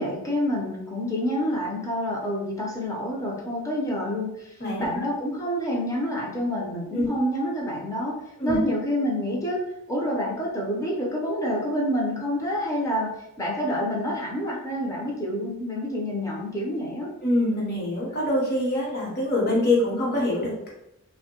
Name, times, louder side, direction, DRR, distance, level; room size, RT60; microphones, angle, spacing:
voice 1, 0.0-17.1, equal, 15° left, -3 dB, 0.6 m, -28 dB
voice 2, 17.2-20.7, left 1 dB, 45° left, -4 dB, 1.0 m, -24 dB
3.0 x 2.1 x 2.9 m, 0.82 s
head